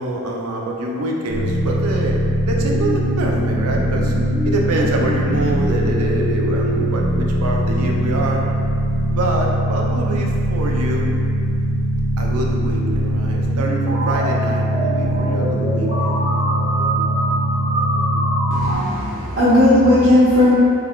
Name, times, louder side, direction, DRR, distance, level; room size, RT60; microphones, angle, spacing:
voice 1, 0.0-2.2 2.5-4.1 4.4-8.5 9.2-11.1 12.2-16.2, right 2 dB, 75° right, -1 dB, 0.5 m, -25 dB
sound 1, 1.3-18.7, right 1 dB, 30° right, 1.1 m, -20 dB
voice 2, 18.5-20.5, left 1 dB, 55° right, -13 dB, 0.9 m, -15 dB
3.2 x 2.3 x 3.6 m, 2.4 s
head